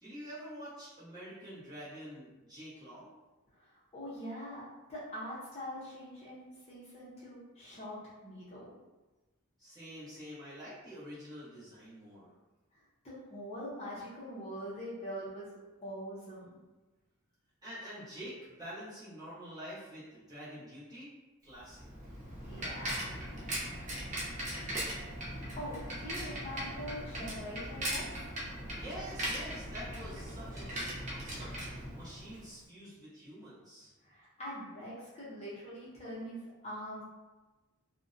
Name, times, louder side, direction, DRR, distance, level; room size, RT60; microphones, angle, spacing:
voice 1, 0.0-3.1 9.6-12.3 17.6-21.1 21.4-21.8 28.7-31.5 31.7-33.9, equal, 15° right, -11 dB, 0.9 m, -47 dB
voice 2, 3.5-8.0 8.2-8.7 12.7-15.5 15.8-16.6 22.4-23.1 25.6-28.2 34.0-37.0, equal, 30° left, -8 dB, 0.6 m, -43 dB
Bicycle, 21.6-32.5, equal, 35° right, 0.5 m, -39 dB
2.5 x 2.1 x 2.4 m, 1.1 s
head